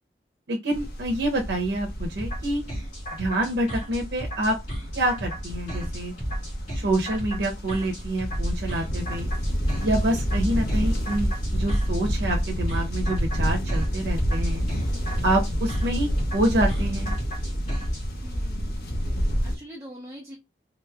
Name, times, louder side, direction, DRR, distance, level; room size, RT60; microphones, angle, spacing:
voice 1, 0.5-2.6 3.1-4.6 4.9-6.1 6.7-9.3 9.8-14.6 15.2-17.2, right 1 dB, 80° right, 0 dB, 0.7 m, -27 dB
sound 1, 0.7-19.6, equal, 60° left, 1.0 m, -28 dB
sound 2, 2.2-18.0, equal, 45° left, 2.1 m, -35 dB
voice 2, 18.2-18.8 19.0-20.4, equal, 15° right, -3 dB, 0.7 m, -44 dB
3.5 x 3.1 x 2.3 m, 0.22 s
head